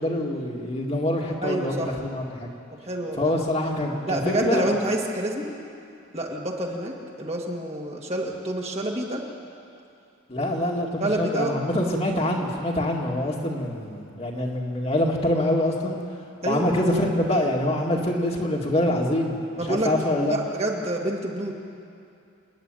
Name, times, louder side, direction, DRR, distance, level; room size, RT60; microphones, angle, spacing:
voice 1, 0.0-2.5 3.2-4.8 10.3-16.0 16.5-20.3, left 1 dB, 30° left, -1 dB, 2.0 m, -25 dB
voice 2, 1.4-1.9 2.8-3.3 4.1-5.5 6.1-9.2 11.0-11.5 16.4-16.7 19.6-19.9 20.3-21.5, right 1 dB, 30° right, 0 dB, 2.0 m, -27 dB
28.0 x 10.5 x 9.1 m, 2.6 s
head